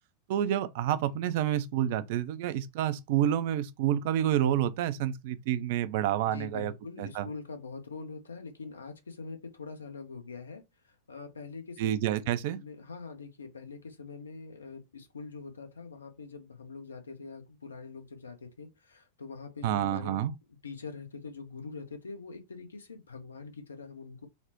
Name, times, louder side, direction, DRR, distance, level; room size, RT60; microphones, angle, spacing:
voice 1, 0.3-6.7 7.0-7.3 11.8-12.6 19.6-20.3, right 11 dB, 50° right, 0.3 m, -28 dB
voice 2, 6.2-11.9 12.2-20.3 20.6-24.3, left 4 dB, 75° left, 0.6 m, -44 dB
4.1 x 2.0 x 2.8 m
figure-of-eight pair, 90°, 0 cm